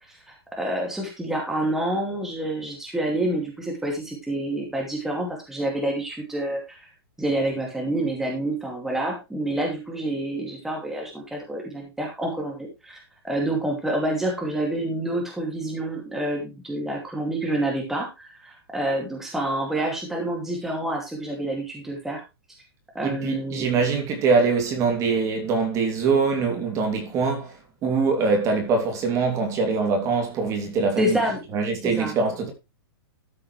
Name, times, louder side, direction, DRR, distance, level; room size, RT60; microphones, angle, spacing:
voice 1, 0.1-6.9 7.2-22.2 22.9-23.7 31.0-31.4 31.8-32.1, right 1 dB, 5° right, 2.5 m, -28 dB
voice 2, 23.0-27.5 27.8-31.2 31.5-32.5, right 4 dB, 25° right, 3.0 m, -23 dB
13.0 x 7.9 x 3.3 m
hypercardioid pair, 155°, 13 cm